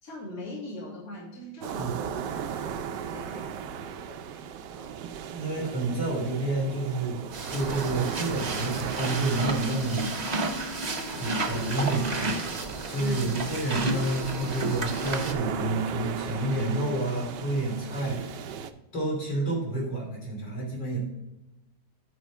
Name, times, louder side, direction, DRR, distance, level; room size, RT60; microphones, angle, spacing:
voice 1, 0.0-4.9 13.0-13.4, left 1 dB, 50° left, -6 dB, 3.1 m, -41 dB
sound 1, 1.6-18.7, right 8 dB, 75° right, 1.3 m, -37 dB
voice 2, 5.3-7.2 7.5-10.1 11.1-12.4 12.9-18.5 18.9-21.0, right 2 dB, 70° left, -3 dB, 3.5 m, -29 dB
sound 2, 7.3-15.3, right 2 dB, 40° right, 0.6 m, -32 dB
Wind instrument woodwind instrument, 10.1-15.9, equal, ahead, 3.1 m, -43 dB
9.3 x 5.1 x 4.7 m, 0.97 s
omnidirectional pair, 2.0 m